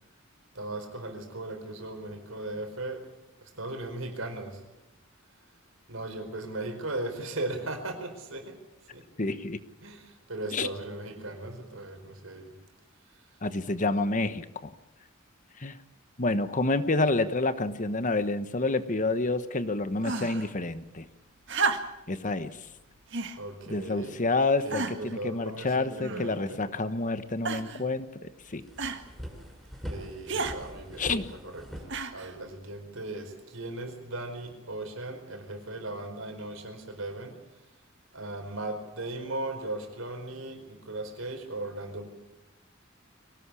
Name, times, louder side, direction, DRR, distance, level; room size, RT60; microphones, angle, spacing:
voice 1, 0.5-3.1 3.4-4.7 5.9-8.6 8.9-9.0 9.8-12.6 13.1-13.3 23.4-24.2 24.6-26.6 29.8-37.4 38.1-42.1, right 2 dB, 90° right, 6 dB, 4.8 m, -37 dB
voice 2, 9.2-9.6 10.5-10.7 13.4-14.7 15.6-15.8 16.2-21.0 22.1-22.6 23.7-28.1 28.5-28.6 31.0-31.2, left 2 dB, 40° left, 12 dB, 1.2 m, -28 dB
sound 1, 20.0-20.5 21.5-22.1 23.1-23.4 24.1-24.2 24.7-25.1 26.0-26.5 27.4-27.8 28.8-29.0 30.3-30.6 31.9-32.3 33.4-33.5, right 4 dB, 65° right, 1.9 m, -32 dB
sound 2, 28.4-32.6, equal, ahead, 5.5 m, -42 dB
24.0 x 18.0 x 8.5 m, 0.97 s
head